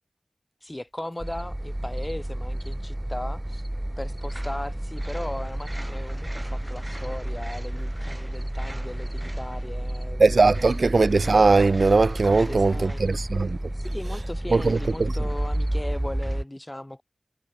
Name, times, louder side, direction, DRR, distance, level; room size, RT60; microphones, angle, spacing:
voice 1, 0.6-3.6 4.0-10.5 12.2-13.0 13.7-17.0, left 1 dB, 25° left, 4.6 m, -37 dB
sound 1, 1.2-16.4, right 1 dB, 15° right, 1.8 m, -31 dB
voice 2, 10.2-13.6 14.5-15.1, right 3 dB, 85° right, 0.9 m, -20 dB
wide cardioid pair, 55°, 0 cm